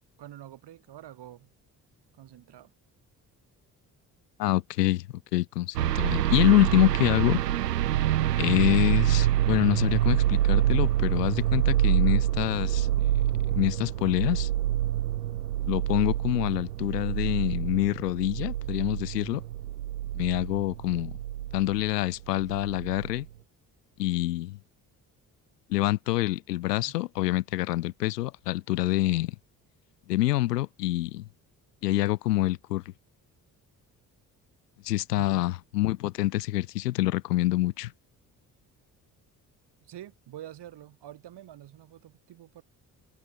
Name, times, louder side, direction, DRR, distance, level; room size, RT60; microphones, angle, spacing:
voice 1, 0.2-1.5 2.1-2.7 26.9-27.0 35.2-35.5 39.8-42.6, right 12 dB, 55° right, 7.6 m, -47 dB
voice 2, 4.4-5.1 5.3-7.4 8.4-13.2 13.5-14.5 15.6-19.4 20.2-21.1 21.5-23.3 24.0-24.6 25.7-29.3 30.1-31.3 31.8-32.8 34.8-37.9, left 16 dB, 75° left, 0.9 m, -26 dB
sound 1, 5.8-21.9 22.4-23.2, right 12 dB, 80° right, 1.6 m, -27 dB
figure-of-eight pair, 45°, 48 cm